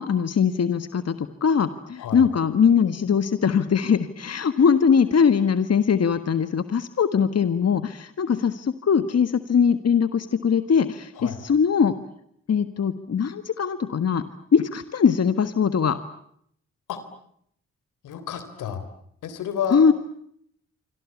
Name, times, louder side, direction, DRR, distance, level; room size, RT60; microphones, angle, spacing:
voice 1, 0.0-11.9 12.5-14.2 14.5-16.0 19.7-19.9, left 6 dB, 55° left, 11 dB, 1.6 m, -21 dB
voice 2, 18.0-18.8 19.2-19.8, left 8 dB, 90° left, 11 dB, 3.6 m, -30 dB
26.5 x 26.0 x 8.5 m, 0.70 s
supercardioid pair, 50°, 30 cm